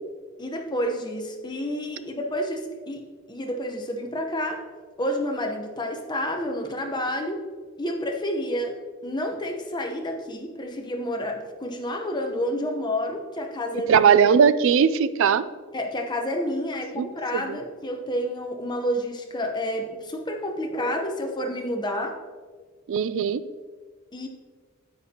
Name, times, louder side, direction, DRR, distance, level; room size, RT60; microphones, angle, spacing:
voice 1, 0.4-4.6 5.0-7.4 7.8-8.8 9.0-14.1 15.7-22.2 24.1-24.3, equal, 20° left, 3 dB, 0.9 m, -29 dB
voice 2, 13.9-15.5 17.0-17.1 17.3-17.6 22.9-23.4, right 7 dB, 65° right, 15 dB, 0.3 m, -19 dB
9.8 x 8.5 x 2.9 m, 1.5 s
head